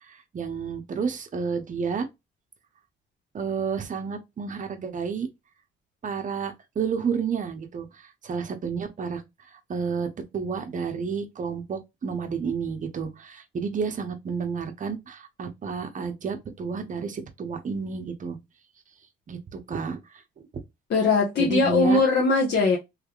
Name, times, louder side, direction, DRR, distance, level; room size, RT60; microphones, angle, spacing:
voice 1, 0.0-2.1 3.3-5.3 6.0-9.2 9.7-18.4 19.3-20.0 20.4-20.6 21.4-22.0, right 6 dB, 40° right, 0.8 m, -30 dB
voice 2, 20.9-22.8, left 3 dB, 55° left, 1.2 m, -20 dB
3.3 x 3.2 x 2.4 m
cardioid pair, 90°, 20 cm